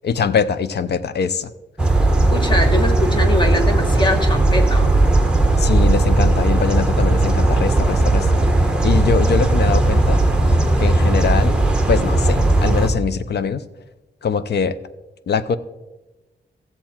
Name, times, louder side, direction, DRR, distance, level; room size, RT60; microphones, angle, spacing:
voice 1, 0.0-1.5 5.6-8.3 8.8-10.2 10.8-13.6 14.2-14.8 15.3-15.6, left 6 dB, 65° left, 13 dB, 0.6 m, -22 dB
sound 1, 1.8-12.9, right 2 dB, 5° right, 1.0 m, -16 dB
voice 2, 2.3-4.9, left 1 dB, 25° left, 4 dB, 1.2 m, -22 dB
15.0 x 7.6 x 4.4 m, 1.1 s
wide cardioid pair, 175°, 18 cm